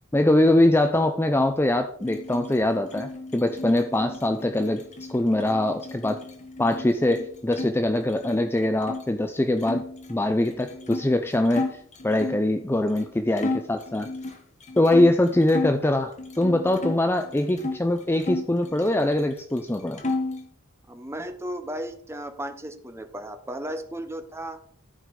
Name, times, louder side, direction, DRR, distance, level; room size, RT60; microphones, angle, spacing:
voice 1, 0.1-6.2 6.6-9.8 10.1-14.1 14.8-20.0, left 1 dB, 10° left, 7 dB, 0.5 m, -23 dB
sound 1, 2.0-7.7 8.0-9.0 9.6-12.5 13.0-13.1 13.4-15.8 16.2-17.8 18.2-19.3 19.6-20.5, left 2 dB, 35° left, 1.6 m, -34 dB
voice 2, 20.9-24.6, right 1 dB, 10° right, 8 dB, 0.9 m, -35 dB
14.0 x 4.9 x 5.3 m, 0.63 s
head